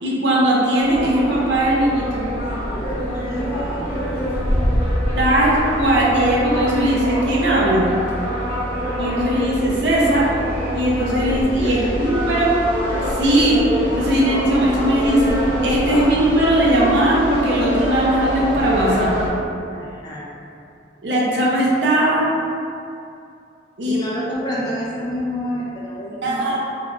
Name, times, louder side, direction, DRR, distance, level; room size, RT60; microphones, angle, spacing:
voice 1, 0.0-2.2 5.2-7.8 9.0-10.3 10.7-12.5 13.1-13.6 14.0-19.1 21.0-22.3 23.8-24.1 26.2-26.6, right 1 dB, 80° right, -4 dB, 0.6 m, -19 dB
sound 1, 0.8-19.3, equal, 55° left, 0.8 m, -24 dB
voice 2, 3.1-3.8 11.3-12.1 19.7-20.3 23.9-26.6, equal, 25° left, -5 dB, 0.4 m, -28 dB
3.2 x 2.3 x 2.4 m, 2.5 s
head